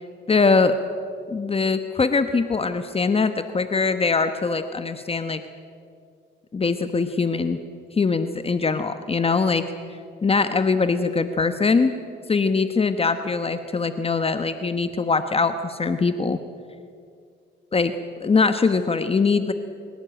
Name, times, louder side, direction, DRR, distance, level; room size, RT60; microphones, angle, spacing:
voice 1, 0.3-0.7 1.3-5.4 6.5-7.6 7.9-9.6 10.2-11.9 12.3-16.4 17.7-17.9 18.2-19.5, left 4 dB, 30° left, 10 dB, 1.1 m, -22 dB
25.0 x 17.0 x 8.9 m, 2.3 s
cardioid pair, 90°, 20 cm